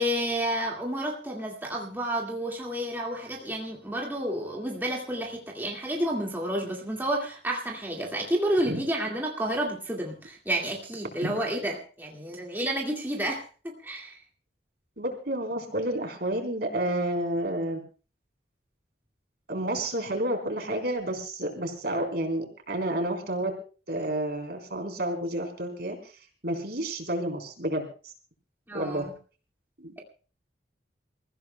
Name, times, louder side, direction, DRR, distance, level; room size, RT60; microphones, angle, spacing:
voice 1, 0.0-13.4 13.8-14.2 28.7-29.1, right 1 dB, 10° right, -1 dB, 2.0 m, -30 dB
voice 2, 15.0-17.8 19.5-23.5 23.9-26.1 26.4-27.9 28.7-29.0 29.8-30.0, right 1 dB, 60° right, 3 dB, 3.9 m, -30 dB
28.0 x 15.5 x 2.2 m, 0.37 s
head